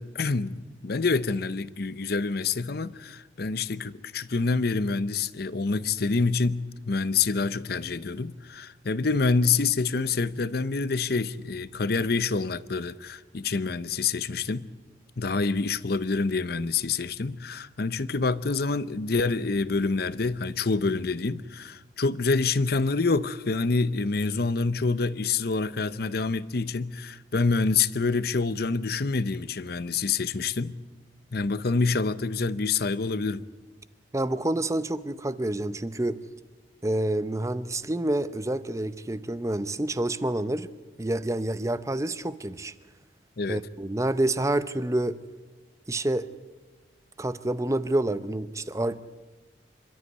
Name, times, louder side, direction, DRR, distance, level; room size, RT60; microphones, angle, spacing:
voice 1, 0.0-14.7 15.2-30.8 31.3-33.4 43.4-43.6, left 4 dB, 55° left, 0.7 m, -27 dB
voice 2, 34.1-36.2 36.8-40.7 41.0-42.7 43.5-45.2 45.9-46.3 47.2-49.1, right 1 dB, 15° right, 0.6 m, -28 dB
27.0 x 13.0 x 9.4 m
head